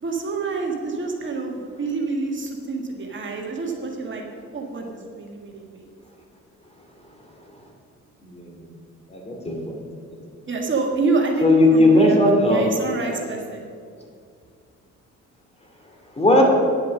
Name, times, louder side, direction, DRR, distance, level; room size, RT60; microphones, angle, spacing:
voice 1, 0.0-4.2 4.5-5.9 10.5-12.2 12.4-13.6, right 3 dB, 40° right, 0 dB, 1.6 m, -27 dB
voice 2, 9.1-9.7 11.4-12.7 16.2-16.4, left 1 dB, 20° left, 0 dB, 2.5 m, -17 dB
9.9 x 8.4 x 6.4 m, 2.3 s
cardioid pair, 90°, 30 cm